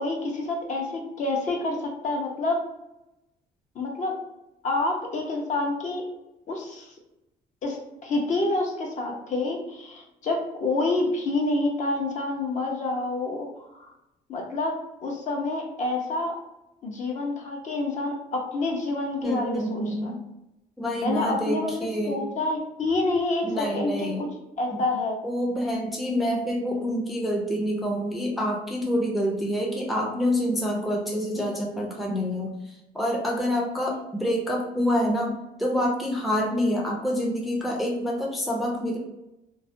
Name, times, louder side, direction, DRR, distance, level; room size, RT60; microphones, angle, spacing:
voice 1, 0.0-2.6 3.8-4.2 4.6-6.0 6.5-6.9 7.6-13.9 14.3-16.4 16.8-20.1 21.0-24.3 24.6-25.2 31.4-31.5, left 2 dB, 45° left, 1 dB, 0.6 m, -28 dB
voice 2, 19.2-20.2 20.8-22.2 23.4-24.2 24.7-24.8 25.2-32.6 32.9-39.0, equal, ahead, -2 dB, 0.4 m, -27 dB
2.3 x 2.1 x 2.5 m, 0.92 s
cardioid pair, 110°, 17 cm